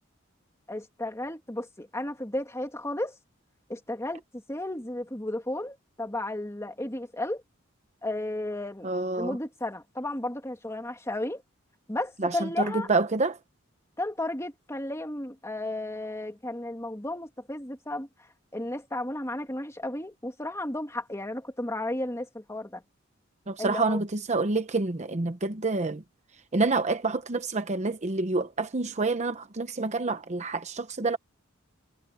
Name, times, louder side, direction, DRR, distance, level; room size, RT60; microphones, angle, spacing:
voice 1, 0.7-3.2 3.7-7.4 8.0-8.9 9.2-11.4 11.9-12.9 14.0-22.8 23.6-24.0, left 1 dB, 15° left, 2.7 m, -33 dB
voice 2, 8.8-9.4 12.2-13.4 23.5-26.0 26.5-31.2, right 3 dB, 35° right, 0.9 m, -28 dB
head